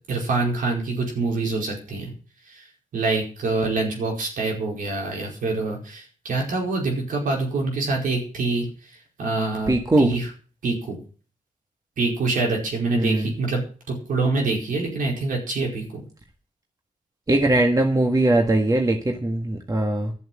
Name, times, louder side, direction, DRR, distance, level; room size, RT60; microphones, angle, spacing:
voice 1, 0.1-2.1 2.5-2.6 2.9-8.7 9.2-9.7 10.0-10.3 10.6-11.0 12.0-16.0, right 3 dB, 90° right, 0 dB, 4.8 m, -25 dB
voice 2, 9.7-10.1 12.9-13.3 17.3-20.1, right 2 dB, 25° right, 2 dB, 1.7 m, -20 dB
11.5 x 7.7 x 7.6 m, 0.40 s
cardioid pair, 80°, 14 cm